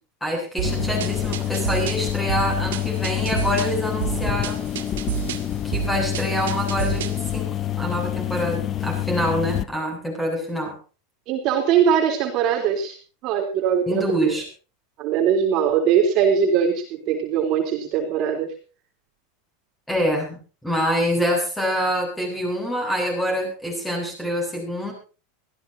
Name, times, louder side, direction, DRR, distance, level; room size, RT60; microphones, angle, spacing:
voice 1, 0.2-4.7 5.6-10.8 13.9-14.5 19.9-24.9, equal, 5° left, 2 dB, 8.0 m, -26 dB
sound 1, 0.6-9.6, left 12 dB, 30° left, 0.9 m, -27 dB
sound 2, 0.6-7.3, right 13 dB, 90° right, 2.3 m, -30 dB
voice 2, 11.3-12.9 13.2-14.3 15.0-18.5, right 8 dB, 40° right, 2 dB, 3.6 m, -21 dB
23.5 x 16.0 x 2.8 m, 0.35 s
supercardioid pair, 150°, 0 cm